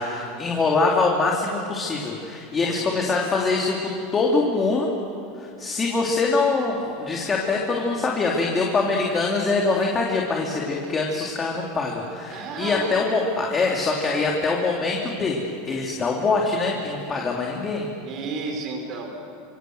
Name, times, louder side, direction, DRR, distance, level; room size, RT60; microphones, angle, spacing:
voice 1, 0.0-4.9 5.3-17.9, left 3 dB, 20° left, -1 dB, 2.7 m, -24 dB
voice 2, 2.6-3.0 12.3-12.9 18.0-19.2, right 4 dB, 40° right, 2 dB, 4.3 m, -32 dB
28.0 x 26.5 x 7.9 m, 2.6 s
supercardioid pair, 145°, 0 cm